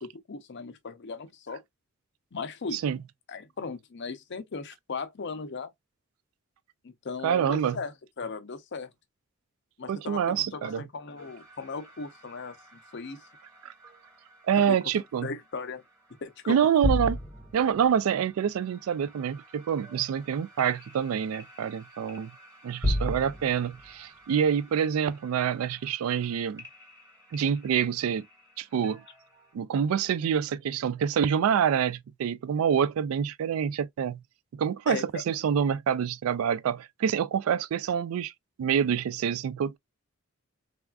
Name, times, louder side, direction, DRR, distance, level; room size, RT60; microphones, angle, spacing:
voice 1, 0.0-1.6 2.3-2.8 3.3-5.7 6.8-8.9 9.8-13.2 14.6-14.8 15.2-15.8 16.2-16.6 34.9-35.2, left 4 dB, 55° left, 0.6 m, -37 dB
voice 2, 7.2-7.8 9.9-10.8 13.6-13.7 14.4-15.3 16.5-17.2 17.5-22.3 22.6-26.6 27.3-28.2 28.6-29.0 29.5-34.2 34.5-38.3 38.6-39.8, right 8 dB, 80° right, 0.3 m, -26 dB
sound 1, 11.2-29.6, left 1 dB, 15° right, 1.3 m, -39 dB
3.4 x 2.4 x 2.2 m
head